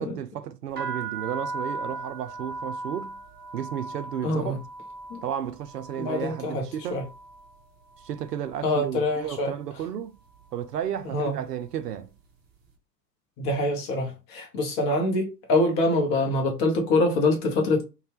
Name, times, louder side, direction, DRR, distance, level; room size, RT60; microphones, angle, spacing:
voice 1, 0.0-3.2 3.5-4.6 5.2-7.0 8.0-10.1 10.5-12.1, right 9 dB, 70° right, 0.6 m, -33 dB
sound 1, 0.7-8.6 8.9-9.5 10.2-10.5 10.7-12.2, right 3 dB, 20° right, 0.9 m, -38 dB
voice 2, 4.2-4.6 5.1-5.2 6.0-6.6 6.9-7.0 8.6-9.5 11.1-11.3 13.4-17.9, left 2 dB, 25° left, 0.6 m, -24 dB
2.6 x 2.2 x 3.3 m
figure-of-eight pair, 100°, 50 cm